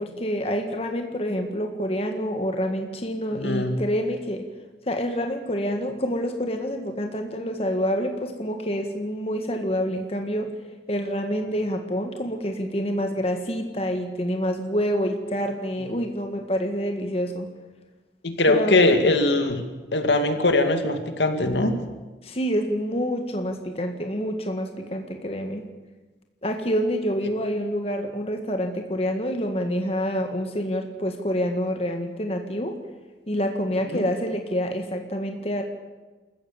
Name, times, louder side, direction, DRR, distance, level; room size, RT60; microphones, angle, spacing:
voice 1, 0.0-4.5 4.9-10.5 10.9-17.5 18.5-18.8 22.2-25.7 26.4-32.8 33.3-35.6, equal, 35° left, 4 dB, 1.7 m, -27 dB
voice 2, 3.3-3.8 18.2-19.6 19.9-21.7 33.9-34.0, left 2 dB, 80° left, 6 dB, 2.3 m, -21 dB
27.0 x 15.0 x 7.2 m, 1.2 s
head